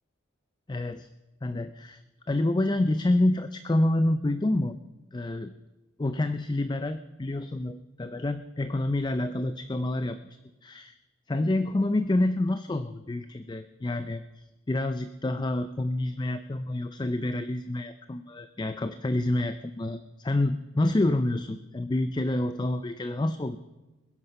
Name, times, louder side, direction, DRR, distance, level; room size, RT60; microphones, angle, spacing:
voice 1, 0.7-1.1 1.4-2.0 2.3-4.8 5.1-5.5 6.0-10.2 10.6-10.9 11.3-23.6, left 1 dB, 20° left, 11 dB, 0.4 m, -28 dB
21.0 x 11.0 x 5.5 m, 1.1 s
head